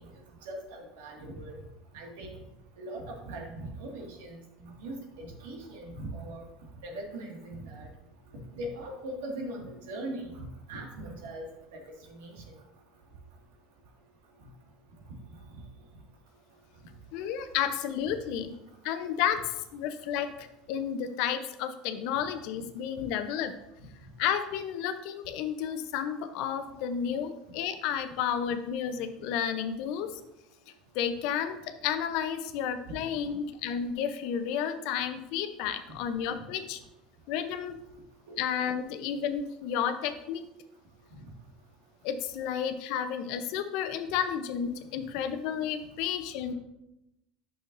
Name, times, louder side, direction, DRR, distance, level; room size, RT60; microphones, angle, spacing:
voice 1, 0.5-1.6 1.9-2.4 2.8-6.5 6.8-7.9 8.5-11.4 12.1-12.3 32.9-33.0 38.3-38.4, right 1 dB, 85° right, 0 dB, 1.9 m, -40 dB
voice 2, 17.1-18.5 18.8-23.5 24.2-30.2 30.9-36.8 37.3-37.8 38.4-40.5 42.0-46.5, left 8 dB, 65° left, 9 dB, 0.7 m, -32 dB
8.9 x 6.3 x 2.6 m, 0.88 s
supercardioid pair, 130°, 0 cm